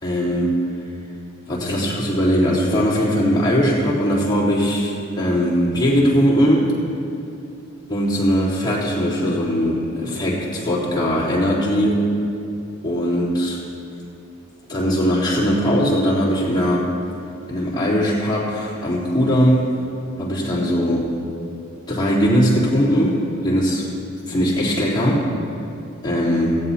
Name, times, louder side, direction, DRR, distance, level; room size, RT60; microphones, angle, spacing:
voice 1, 0.0-0.5 1.5-6.7 7.9-12.0 12.8-13.6 14.7-16.9 17.5-19.8 20.2-21.1 21.9-23.9 24.3-25.3 26.0-26.6, equal, 20° left, -8 dB, 3.5 m, -20 dB
16.5 x 16.5 x 2.9 m, 2.6 s
head